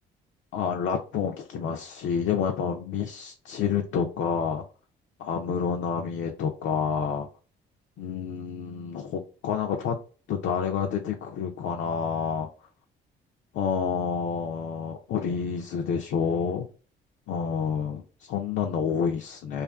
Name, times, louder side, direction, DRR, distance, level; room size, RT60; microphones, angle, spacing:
voice 1, 0.5-4.6 5.2-7.3 8.0-10.0 10.3-12.5 13.5-16.7 17.3-19.6, left 7 dB, 70° left, 2 dB, 0.4 m, -29 dB
2.4 x 2.4 x 2.3 m, 0.38 s
cardioid pair, 90°, 20 cm